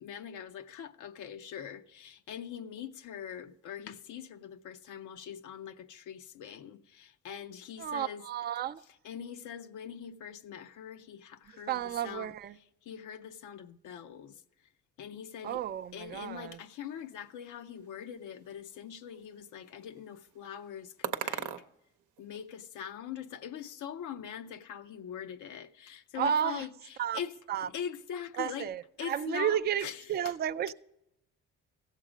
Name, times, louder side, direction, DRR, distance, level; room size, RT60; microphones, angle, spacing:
voice 1, 0.0-8.2 9.0-14.4 15.0-15.6 15.9-21.5 22.2-28.7 29.0-30.3, left 9 dB, 80° left, 0.7 m, -43 dB
voice 2, 7.8-8.8 11.7-12.5 15.4-16.6 26.2-26.7 27.0-27.2 27.5-27.7 28.4-30.7, right 10 dB, 35° right, 0.4 m, -32 dB
sound 1, 15.4-22.6, right 10 dB, 85° right, 0.7 m, -44 dB
15.5 x 7.4 x 5.0 m
cardioid pair, 90°, 30 cm